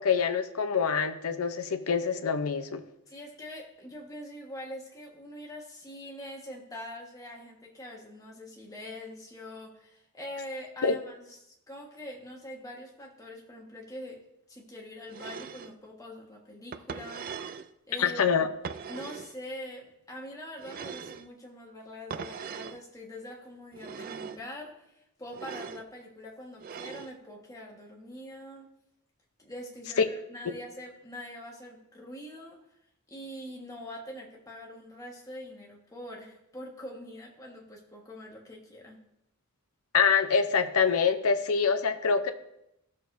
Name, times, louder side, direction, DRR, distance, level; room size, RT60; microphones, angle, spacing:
voice 1, 0.0-2.8 10.8-11.0 18.0-18.5 30.0-30.1 39.9-42.3, left 6 dB, 80° left, 9 dB, 0.7 m, -25 dB
voice 2, 3.1-14.2 14.5-17.5 17.9-18.2 18.9-28.7 29.4-32.6 33.1-39.0, left 1 dB, 15° left, -2 dB, 1.5 m, -44 dB
sound 1, 15.1-15.7 16.7-17.7 18.6-19.4 20.6-21.3 22.1-22.8 23.7-24.4 25.3-25.9 26.6-27.1, right 6 dB, 40° right, 0.3 m, -40 dB
15.0 x 6.5 x 2.7 m, 0.82 s
head